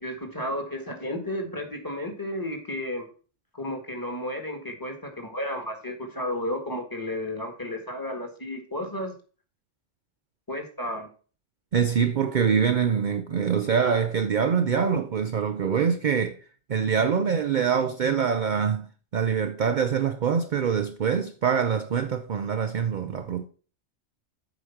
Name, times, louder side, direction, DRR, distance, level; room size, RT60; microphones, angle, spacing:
voice 1, 0.0-3.1 3.5-9.2 10.5-11.1, left 1 dB, 15° left, 1.6 m, -33 dB
voice 2, 11.7-16.4 16.7-23.5, right 7 dB, 50° right, 0.6 m, -24 dB
8.0 x 5.1 x 5.7 m
omnidirectional pair, 1.3 m